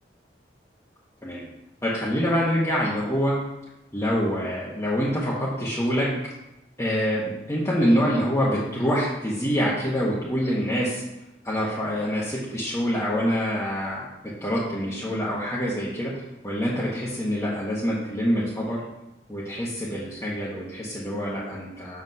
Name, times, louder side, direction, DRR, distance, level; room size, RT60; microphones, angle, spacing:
voice 1, 1.8-3.3 3.9-6.1 6.8-11.0 11.4-14.1 14.4-16.1 16.4-18.8 19.3-22.0, equal, 15° left, -8 dB, 1.0 m, -25 dB
7.5 x 6.1 x 2.7 m, 0.92 s
head